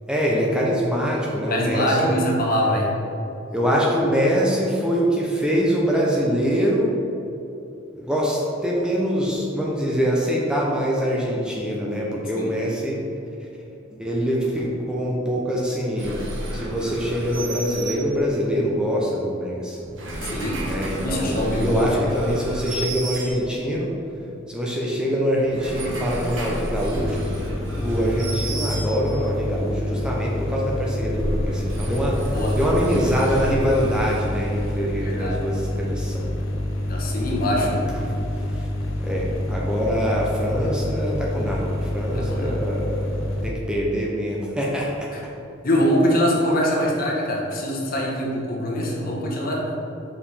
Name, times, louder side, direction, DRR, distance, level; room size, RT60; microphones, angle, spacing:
voice 1, 0.1-2.3 3.5-6.9 7.9-13.2 13.9-16.2 16.5-19.8 20.6-23.9 24.5-27.3 27.7-36.3 37.6-37.7 38.0-38.1 38.5-38.7 39.0-45.2, equal, 5° right, -4 dB, 0.6 m, -24 dB
voice 2, 1.5-2.9 12.4-12.6 20.2-20.6 21.0-22.2 32.3-32.6 35.0-35.4 36.9-37.9 42.1-42.6 45.1-45.2 45.6-49.6, equal, 50° left, -2 dB, 1.1 m, -23 dB
sound 1, 16.0-18.5 19.8-23.8 25.3-29.4 30.9-35.0, right 1 dB, 70° right, 1.2 m, -32 dB
sound 2, 27.0-43.5, left 1 dB, 80° left, 0.7 m, -27 dB
5.4 x 5.0 x 4.2 m, 2.9 s
head